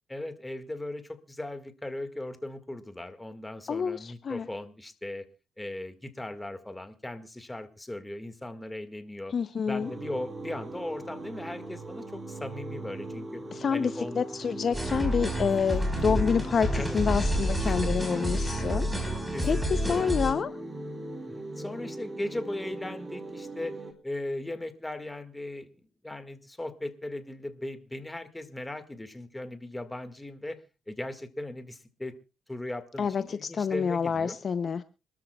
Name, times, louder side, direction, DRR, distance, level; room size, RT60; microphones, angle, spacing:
voice 1, 0.1-5.3 5.6-9.3 9.7-13.4 13.7-14.2 16.7-17.0 17.7-17.8 19.1-20.0 21.2-23.8 24.0-30.6 30.9-32.1 32.5-34.4, left 1 dB, 10° left, 9 dB, 1.8 m, -38 dB
voice 2, 3.7-4.5 9.3-9.9 13.5-18.9 19.4-20.5 33.0-34.8, left 6 dB, 50° left, 12 dB, 0.6 m, -28 dB
sound 1, 9.8-23.9, right 1 dB, 30° right, 3.1 m, -39 dB
sound 2, 14.7-20.3, equal, 10° right, 4.7 m, -29 dB
26.5 x 13.0 x 2.3 m, 0.31 s
cardioid pair, 90°, 0 cm